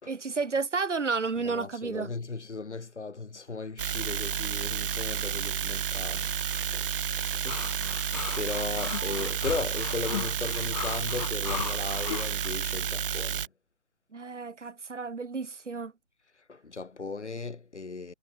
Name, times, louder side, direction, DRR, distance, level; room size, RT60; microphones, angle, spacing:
voice 1, 0.1-2.1 7.6-8.0 9.0-9.2 14.1-15.9, right 4 dB, 80° right, 1.3 m, -32 dB
voice 2, 1.4-7.6 7.9-13.5 16.3-18.1, left 4 dB, 75° left, 4.6 m, -37 dB
sound 1, 3.8-13.5, right 8 dB, 50° right, 0.6 m, -31 dB
sound 2, 7.5-12.5, left 10 dB, 35° left, 1.0 m, -37 dB
figure-of-eight pair, 135°, 35 cm